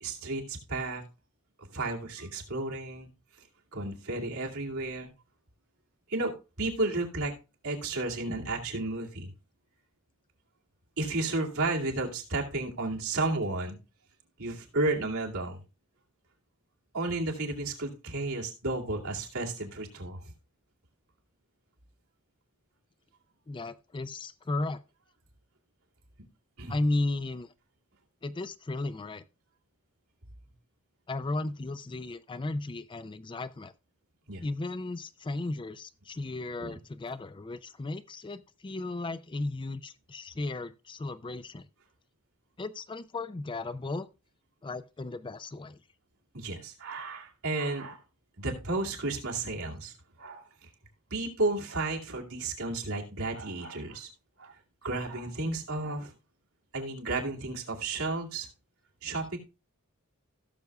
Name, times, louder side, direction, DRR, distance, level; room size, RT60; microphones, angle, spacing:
voice 1, 0.0-1.0 1.6-3.1 3.7-5.1 6.1-7.3 7.6-9.3 11.0-13.8 14.4-15.6 16.9-20.2 26.6-26.7 34.3-34.4 36.6-36.8 46.3-48.0 48.4-49.9 50.2-50.7 51.1-54.1 54.4-54.5 54.8-56.1 56.7-58.5 59.0-59.4, right 2 dB, 85° right, 2.5 m, -32 dB
voice 2, 23.5-24.8 26.7-27.5 28.2-29.2 31.1-33.7 34.4-41.7 42.6-44.1 44.6-45.8, left 2 dB, 25° left, 0.4 m, -35 dB
16.5 x 6.7 x 2.3 m
head